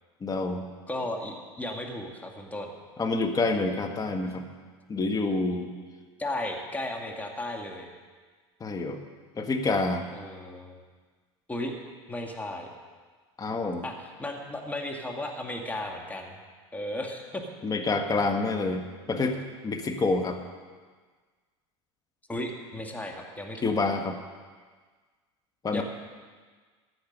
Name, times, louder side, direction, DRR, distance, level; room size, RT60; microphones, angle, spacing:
voice 1, 0.2-0.7 3.0-4.4 4.9-5.7 8.6-9.0 9.4-10.0 13.4-13.8 17.6-20.4 23.6-24.2 25.6-25.8, left 3 dB, 25° left, 5 dB, 1.7 m, -27 dB
voice 2, 0.9-2.7 4.1-4.2 6.2-7.9 10.1-10.8 11.5-11.7 12.1-12.7 13.8-16.4 16.7-17.4 22.3-23.8 25.7-25.8, left 1 dB, 10° left, 1 dB, 2.0 m, -35 dB
15.0 x 10.5 x 5.4 m, 1.5 s
hypercardioid pair, 95°, 14 cm